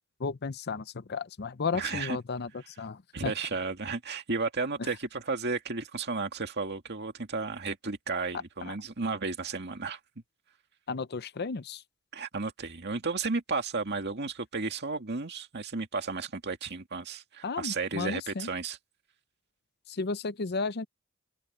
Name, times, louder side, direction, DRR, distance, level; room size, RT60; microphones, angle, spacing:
voice 1, 0.2-3.3 4.8-4.9 8.7-8.8 10.9-11.8 17.4-18.5 19.9-20.9, left 4 dB, 50° left, 0.7 m, -34 dB
voice 2, 1.7-2.2 3.1-10.0 12.1-18.8, right 4 dB, 55° right, 2.2 m, -33 dB
open air
head